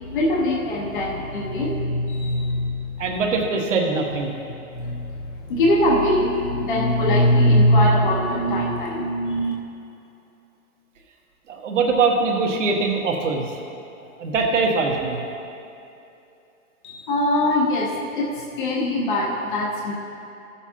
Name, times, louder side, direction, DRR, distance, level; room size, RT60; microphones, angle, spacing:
voice 1, 0.1-2.8 4.7-5.0 5.5-9.5 16.8-19.9, left 1 dB, 35° left, -2 dB, 1.0 m, -21 dB
voice 2, 3.0-4.3 11.5-13.4 14.2-15.2, right 4 dB, 55° right, 1 dB, 1.4 m, -22 dB
15.0 x 7.0 x 2.8 m, 2.7 s
hypercardioid pair, 175°, 43 cm